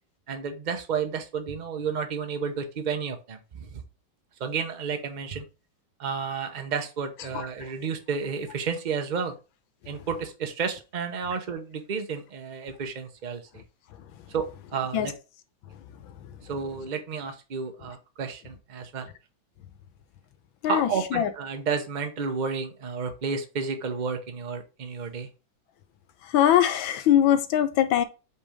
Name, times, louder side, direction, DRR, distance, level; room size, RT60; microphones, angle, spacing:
voice 1, 0.3-3.8 4.4-5.5 6.0-9.3 9.8-13.6 14.3-15.1 16.5-19.1 20.6-25.3, right 6 dB, 55° right, 0.5 m, -31 dB
voice 2, 20.6-21.3 26.3-28.0, left 11 dB, 85° left, 1.5 m, -21 dB
5.6 x 3.4 x 4.9 m
omnidirectional pair, 2.1 m